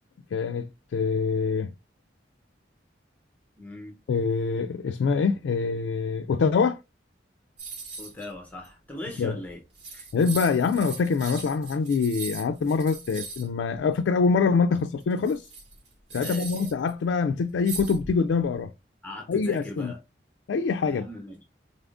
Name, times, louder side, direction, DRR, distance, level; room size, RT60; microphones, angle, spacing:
voice 1, 0.3-1.7 4.1-6.8 9.2-9.4 10.1-15.4 16.1-18.7 19.3-19.9 20.5-21.1, left 5 dB, 80° left, 0.3 m, -25 dB
voice 2, 3.6-3.9 8.0-9.6 9.9-10.1 16.2-16.7 19.0-20.0 20.8-21.4, left 2 dB, 10° left, 0.7 m, -39 dB
sound 1, 7.6-8.3 8.6-8.7 9.5-9.6 9.7-13.5 15.0-16.9 17.7-18.4, right 4 dB, 75° right, 2.3 m, -39 dB
4.1 x 3.5 x 2.4 m
head